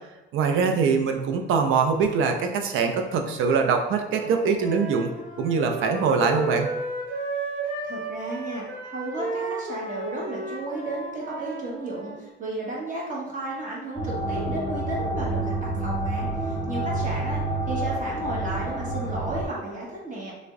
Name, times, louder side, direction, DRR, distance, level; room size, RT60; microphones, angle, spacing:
voice 1, 0.3-5.1 5.4-6.7, right 5 dB, 85° right, 5 dB, 0.5 m, -23 dB
Wind instrument woodwind instrument, 4.0-12.2, right 2 dB, 65° right, 1.2 m, -33 dB
voice 2, 7.8-20.3, right 2 dB, 40° right, -3 dB, 1.0 m, -33 dB
sound 1, 14.0-19.5, right 2 dB, 5° right, 1.2 m, -28 dB
3.3 x 2.1 x 3.5 m, 1.1 s
cardioid pair, 90°, 20 cm